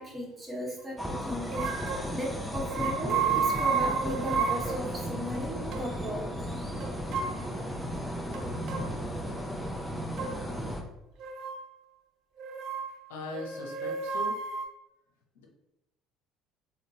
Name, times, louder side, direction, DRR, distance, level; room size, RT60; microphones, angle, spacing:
voice 1, 0.0-1.8 2.1-7.0, equal, 20° right, -2 dB, 1.1 m, -36 dB
sound 1, 1.0-10.8, equal, 5° left, 0.5 m, -35 dB
sound 2, 1.5-2.1 2.6-4.9 5.3-5.4 5.7-5.9 6.8-7.4 8.3-8.9 10.2-10.3 11.2-11.6 12.4-12.9 13.3-14.6, right 6 dB, 55° right, 0.4 m, -31 dB
voice 2, 13.1-14.3 15.4-15.5, left 3 dB, 75° left, 1 dB, 0.6 m, -40 dB
3.6 x 2.2 x 2.7 m, 0.91 s
figure-of-eight pair, 60°, 0 cm